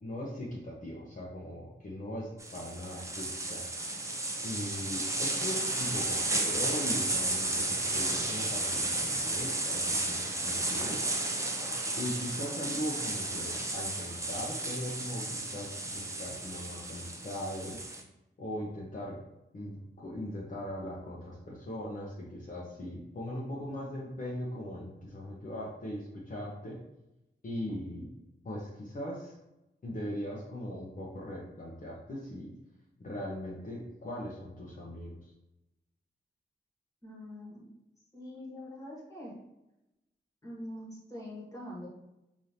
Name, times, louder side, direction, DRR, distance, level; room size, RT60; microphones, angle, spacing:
voice 1, 0.0-3.6 4.4-11.0 12.0-17.8 18.4-19.2 19.5-26.8 27.4-28.1 28.4-29.3 29.8-32.5 33.0-35.2, left 1 dB, 45° left, -5 dB, 0.8 m, -39 dB
sound 1, 2.4-18.0, right 2 dB, 15° right, 0.5 m, -33 dB
voice 2, 37.0-37.7 38.1-39.3 40.4-41.9, left 1 dB, 15° left, -4 dB, 1.3 m, -44 dB
4.9 x 2.7 x 2.8 m, 0.93 s
wide cardioid pair, 155°, 19 cm